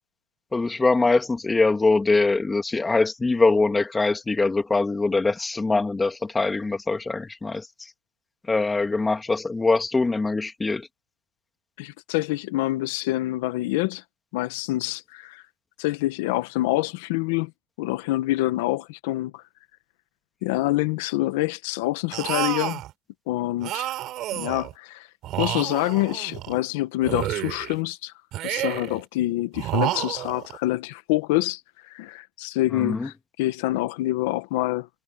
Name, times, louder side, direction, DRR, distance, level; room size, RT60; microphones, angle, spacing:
voice 1, 0.5-7.7 8.5-10.9 32.8-33.1, left 3 dB, 15° left, 2.4 m, -23 dB
voice 2, 11.8-14.0 14.3-15.4 15.8-17.5 17.8-19.4 20.4-22.8 23.3-23.9 24.3-25.1 25.4-28.1 28.4-34.9, left 17 dB, 90° left, 1.4 m, -26 dB
sound 1, 22.1-22.9 23.6-24.7 25.2-26.6 27.0-27.8 28.3-29.0 29.5-30.6, right 14 dB, 60° right, 5.8 m, -29 dB
supercardioid pair, 100°, 0 cm